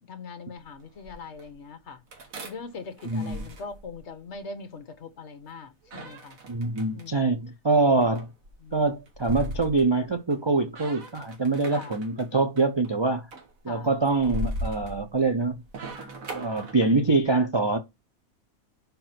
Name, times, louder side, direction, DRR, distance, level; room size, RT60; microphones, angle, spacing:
voice 1, 0.0-2.0 2.4-6.4 6.9-7.3 8.6-8.9 11.7-12.0 13.7-13.9 16.1-16.2 17.1-17.2, left 4 dB, 55° left, 1.2 m, -41 dB
sound 1, 0.6-1.5 2.1-4.4 5.8-7.1 7.8-10.4 10.7-12.3 12.6-12.9 13.3-17.2, equal, 75° right, 1.7 m, -38 dB
voice 2, 3.0-3.4 6.5-8.3 8.7-13.3 13.6-15.6 16.3-17.8, right 3 dB, 45° right, 0.3 m, -24 dB
5.2 x 4.6 x 5.8 m
omnidirectional pair, 1.5 m